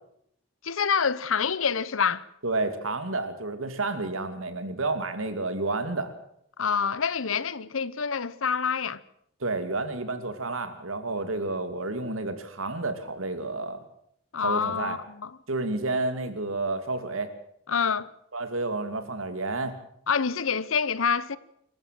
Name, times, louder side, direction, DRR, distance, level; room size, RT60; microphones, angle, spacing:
voice 1, 0.6-2.2 6.6-9.0 14.3-15.3 17.7-18.1 20.1-21.4, left 6 dB, 90° left, 0.9 m, -26 dB
voice 2, 2.4-6.1 9.4-13.8 14.4-15.0 15.5-17.3 18.3-19.7, right 2 dB, 90° right, 2.5 m, -30 dB
26.0 x 14.5 x 7.6 m
head